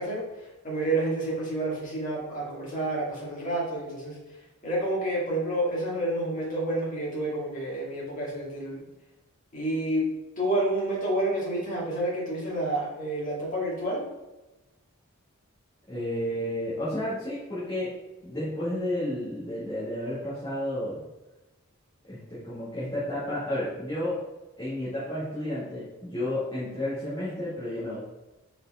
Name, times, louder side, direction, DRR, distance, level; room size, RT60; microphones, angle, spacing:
voice 1, 0.0-4.2 4.6-8.8 9.5-10.0 10.4-14.0, right 1 dB, 35° left, -6 dB, 2.4 m, -29 dB
voice 2, 15.9-17.9 18.2-21.0 22.1-24.1 24.6-28.0, left 1 dB, 20° left, -11 dB, 2.1 m, -31 dB
5.2 x 4.9 x 4.9 m, 1.1 s
head